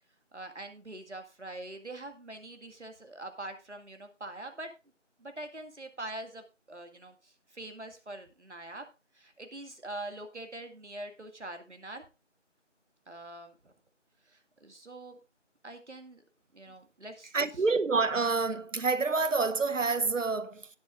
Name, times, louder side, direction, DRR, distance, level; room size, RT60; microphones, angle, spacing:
voice 1, 0.3-4.7 5.2-8.8 9.1-12.1 13.1-13.7 14.3-15.2 15.6-16.2 16.5-17.6, right 1 dB, 65° right, 2.2 m, -44 dB
voice 2, 17.3-20.7, right 4 dB, 85° right, 0.9 m, -28 dB
17.0 x 8.1 x 2.5 m
figure-of-eight pair, 180°, 37 cm